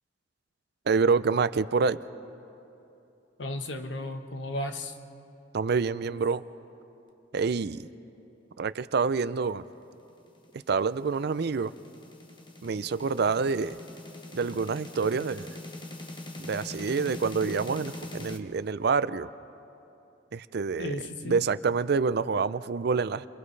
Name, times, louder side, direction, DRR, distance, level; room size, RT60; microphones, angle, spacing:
voice 1, 0.9-2.0 5.5-6.4 7.3-7.9 8.6-9.6 10.7-11.7 12.6-13.8 14.3-15.5 16.4-19.3 20.3-23.3, right 5 dB, 60° right, 15 dB, 0.5 m, -27 dB
voice 2, 3.4-4.9 20.8-21.4, left 1 dB, 70° left, 6 dB, 1.1 m, -34 dB
sound 1, 10.3-18.4, left 2 dB, 25° left, 1.1 m, -42 dB
29.5 x 27.0 x 3.3 m, 2.9 s
head